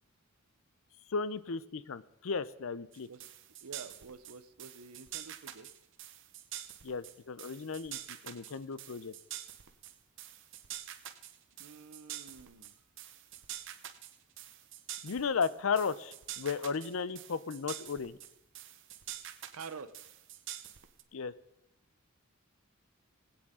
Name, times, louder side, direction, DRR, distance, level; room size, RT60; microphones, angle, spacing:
voice 1, 1.1-3.1 6.8-8.0 8.2-9.1 15.0-18.2 21.1-21.3, left 5 dB, 65° left, 16 dB, 0.5 m, -35 dB
sound 1, 2.9-21.0, right 12 dB, 55° right, 0.8 m, -46 dB
voice 2, 3.6-5.7 11.6-12.7 19.5-20.1, right 5 dB, 90° right, 13 dB, 0.8 m, -48 dB
20.5 x 8.7 x 3.7 m, 0.88 s
head